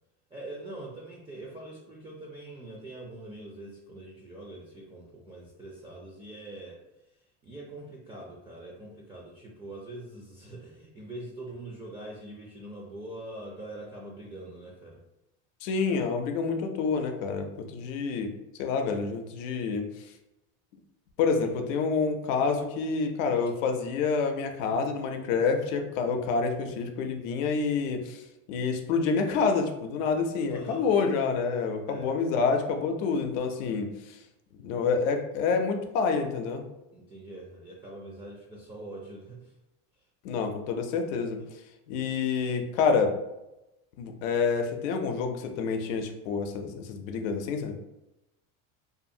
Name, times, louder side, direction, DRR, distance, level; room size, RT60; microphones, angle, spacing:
voice 1, 0.3-6.8 7.4-15.0 30.5-30.9 31.9-32.1 36.9-39.5, right 1 dB, 15° right, -3 dB, 0.3 m, -43 dB
voice 2, 15.6-18.3 18.6-20.1 21.2-28.2 28.5-34.2 34.6-36.6 40.2-41.4 41.9-43.2 44.0-47.8, left 5 dB, 85° left, 5 dB, 0.5 m, -28 dB
2.5 x 2.4 x 2.7 m, 0.94 s
supercardioid pair, 115°, 37 cm